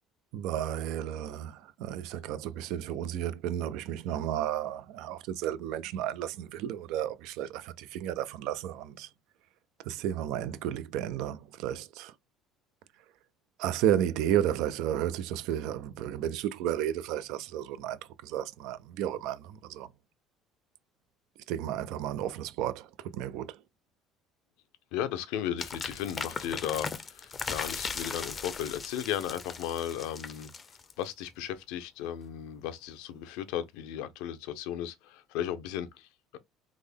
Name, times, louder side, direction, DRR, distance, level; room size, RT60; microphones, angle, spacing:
voice 1, 0.3-9.1 9.8-12.1 13.6-19.9 21.5-23.6, right 11 dB, 75° right, 0.4 m, -32 dB
voice 2, 24.9-30.5 31.0-36.4, left 10 dB, 80° left, 0.6 m, -35 dB
sound 1, 25.6-31.1, left 5 dB, 25° left, 0.5 m, -38 dB
3.6 x 2.1 x 3.3 m
cardioid pair, 115°, 0 cm